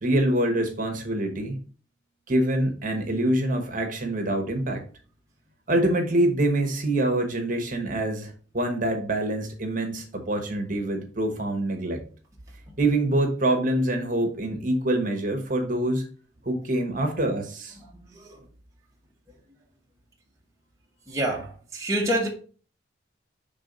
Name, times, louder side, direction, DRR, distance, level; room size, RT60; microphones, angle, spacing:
voice 1, 0.0-1.6 2.3-4.8 5.7-12.0 12.8-16.1 16.4-17.8, right 1 dB, 45° right, 1.2 m, -25 dB
voice 2, 21.1-21.4 21.7-22.3, right 1 dB, 15° right, 1.0 m, -25 dB
5.4 x 3.6 x 5.2 m
head